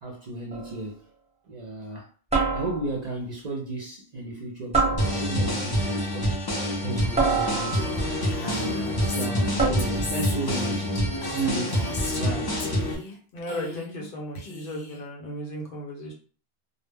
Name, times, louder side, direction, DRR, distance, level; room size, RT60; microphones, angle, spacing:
voice 1, 0.0-1.0 1.5-2.1 2.5-6.4 6.8-7.9 8.4-10.9 11.2-12.6, right 2 dB, 50° right, 0.6 m, -34 dB
sound 1, 0.5-0.8 2.3-3.1 4.7-5.6 7.2-8.1 9.6-10.2, right 4 dB, 5° right, 0.7 m, -26 dB
sound 2, 5.0-12.9, equal, 30° left, 0.5 m, -27 dB
Female speech woman speaking, 7.7-12.3 12.6-13.2 13.4-14.1 14.3-15.0, left 3 dB, 85° left, 0.9 m, -37 dB
voice 2, 13.3-16.1, equal, 60° left, 0.9 m, -35 dB
2.1 x 2.0 x 3.3 m
omnidirectional pair, 1.0 m